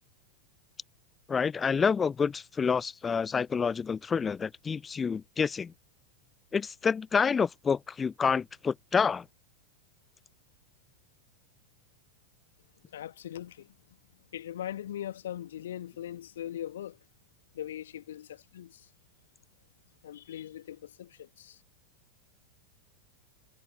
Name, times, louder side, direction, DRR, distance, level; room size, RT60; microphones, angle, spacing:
voice 1, 1.3-5.7 6.5-9.2, left 6 dB, 15° left, 0.4 m, -28 dB
voice 2, 12.9-13.7 14.3-17.0 17.5-18.9 20.0-21.6, left 11 dB, 60° left, 1.7 m, -40 dB
figure-of-eight pair, 90°, 0 cm